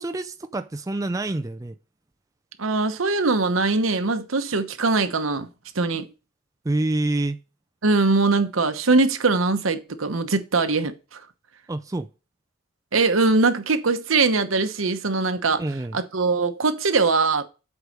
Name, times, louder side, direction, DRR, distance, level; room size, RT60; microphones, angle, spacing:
voice 1, 0.0-1.8 6.6-7.4 11.7-12.1 15.6-16.0, right 2 dB, 15° right, 0.4 m, -27 dB
voice 2, 2.6-5.5 5.7-6.1 7.8-11.2 12.9-15.6 15.9-17.4, right 3 dB, 80° right, 1.0 m, -21 dB
8.1 x 4.8 x 6.5 m
head